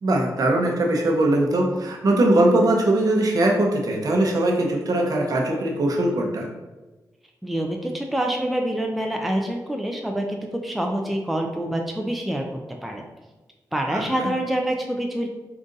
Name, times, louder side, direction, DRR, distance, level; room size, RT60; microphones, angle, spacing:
voice 1, 0.0-6.5 13.9-14.3, right 1 dB, 60° right, 1 dB, 0.7 m, -21 dB
voice 2, 7.4-12.5 12.8-13.0 13.7-15.3, right 1 dB, ahead, 2 dB, 0.3 m, -26 dB
3.8 x 2.4 x 3.8 m, 1.1 s
wide cardioid pair, 135°, 7 cm